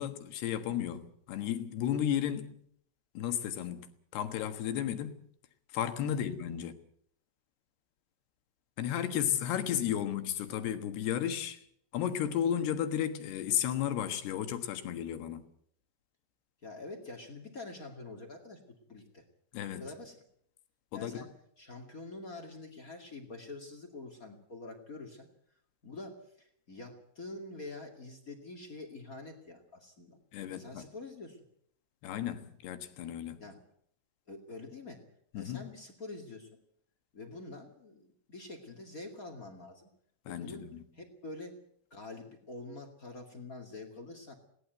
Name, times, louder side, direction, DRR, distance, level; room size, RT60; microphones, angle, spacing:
voice 1, 0.0-2.5 3.1-5.2 5.7-6.7 8.8-11.6 11.9-15.5 19.5-19.9 20.9-21.2 30.3-30.8 32.0-33.4 35.3-35.6 40.3-40.8, left 10 dB, 65° left, 3.1 m, -33 dB
voice 2, 16.6-19.3 19.8-20.2 20.9-25.3 25.8-30.2 30.5-31.4 33.4-33.6 34.3-35.1 35.3-36.6 37.1-39.9 40.3-41.6 41.9-44.3, left 2 dB, 45° left, 1.1 m, -46 dB
20.0 x 17.5 x 8.1 m
omnidirectional pair, 5.6 m